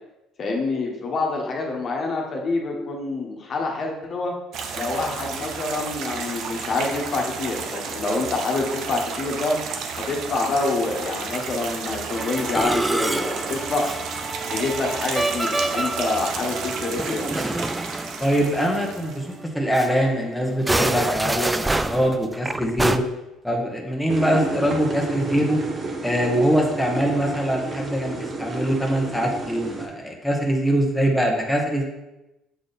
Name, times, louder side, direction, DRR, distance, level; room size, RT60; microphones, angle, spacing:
voice 1, 0.4-4.3 4.8-9.6 10.0-13.9 14.5-17.6, left 3 dB, 50° left, 0 dB, 1.2 m, -26 dB
sound 1, 4.5-19.3, right 5 dB, 65° right, 0.7 m, -32 dB
Musical instrument, 12.2-19.0 19.3-19.5 19.7-19.9 20.5-23.0, right 2 dB, 15° right, 0.3 m, -27 dB
voice 2, 18.2-19.3 19.5-23.0 23.4-25.6 26.0-31.8, equal, ahead, 0 dB, 1.2 m, -23 dB
sound 2, 24.1-29.9, right 2 dB, 35° right, 1.2 m, -31 dB
6.7 x 3.7 x 4.1 m, 0.96 s
supercardioid pair, 75°, 0 cm